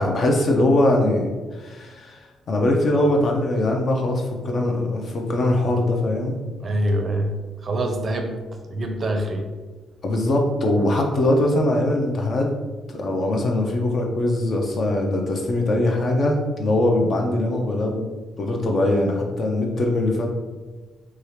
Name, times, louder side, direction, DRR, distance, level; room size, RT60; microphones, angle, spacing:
voice 1, 0.0-2.2 2.5-6.4 10.0-12.5 12.9-20.3, left 1 dB, 50° left, 1 dB, 0.5 m, -21 dB
voice 2, 6.6-7.3 7.6-8.3 8.7-9.4, right 1 dB, 40° right, 4 dB, 0.5 m, -24 dB
2.8 x 2.4 x 3.2 m, 1.3 s
cardioid pair, 90°, 0 cm